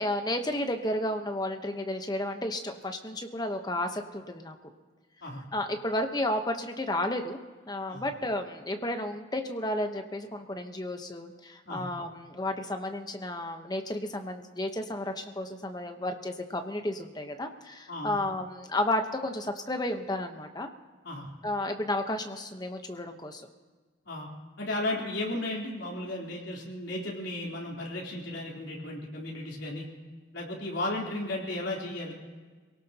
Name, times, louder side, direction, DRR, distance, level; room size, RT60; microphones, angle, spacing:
voice 1, 0.0-4.5 5.5-7.4 7.7-20.7 21.4-23.5, left 1 dB, 20° left, 6 dB, 1.0 m, -32 dB
voice 2, 17.9-18.2 21.0-21.3 24.1-24.3 24.6-29.9 30.3-32.1, left 1 dB, 70° left, -3 dB, 3.8 m, -34 dB
26.0 x 18.0 x 2.9 m, 1.4 s
head